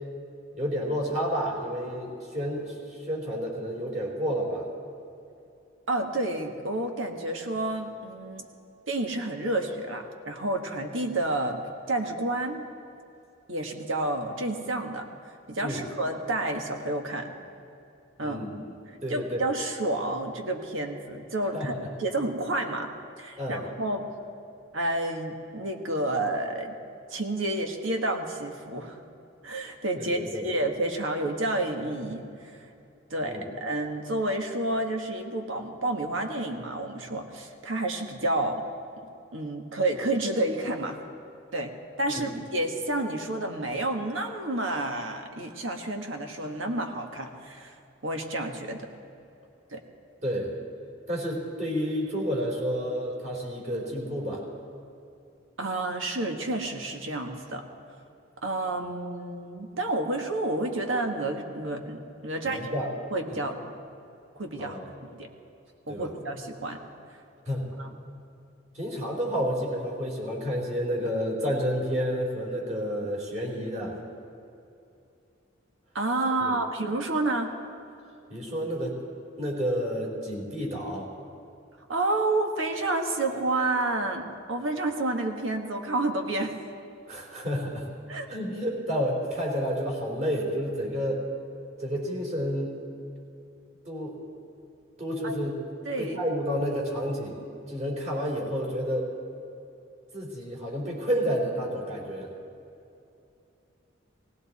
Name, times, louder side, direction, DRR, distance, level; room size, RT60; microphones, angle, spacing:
voice 1, 0.5-4.7 15.6-15.8 18.2-19.4 21.5-21.7 23.4-23.7 30.0-30.5 33.3-33.4 42.1-42.3 50.2-50.5 51.1-54.4 62.5-62.9 63.3-63.4 64.6-64.9 65.9-66.1 67.5-67.6 68.7-74.0 76.4-76.6 78.3-78.9 79.4-81.1 87.1-87.9 88.3-91.2 91.8-92.8 93.9-94.2 95.0-95.5 96.0-97.4 97.7-99.1 100.1-102.3, equal, 40° right, -2 dB, 3.7 m, -30 dB
voice 2, 5.9-8.4 8.9-11.6 11.9-12.6 13.5-15.0 15.5-17.3 18.2-18.4 19.1-24.0 24.7-26.7 27.1-29.0 29.4-32.7 33.1-38.6 39.3-41.0 41.5-41.7 42.0-47.7 48.0-48.9 49.7-49.8 55.6-57.7 58.4-62.7 63.1-63.6 64.4-65.3 65.9-66.8 67.8-67.9 75.9-77.5 81.9-86.5 88.1-88.3 95.2-95.3 95.8-96.2, right 2 dB, 80° right, 4 dB, 1.6 m, -30 dB
19.0 x 17.0 x 4.2 m, 2.7 s
head